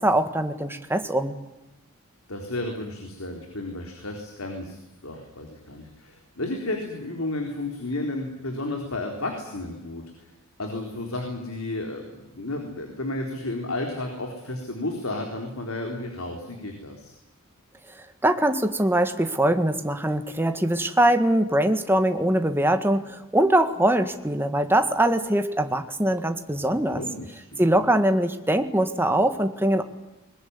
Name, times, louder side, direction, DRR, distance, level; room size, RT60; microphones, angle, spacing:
voice 1, 0.0-1.3 18.2-27.0 27.6-29.8, right 1 dB, 10° right, 7 dB, 1.7 m, -22 dB
voice 2, 2.3-10.3 10.6-17.1 26.9-27.6, left 2 dB, 80° left, 2 dB, 4.0 m, -32 dB
21.5 x 21.0 x 9.8 m, 1.0 s
head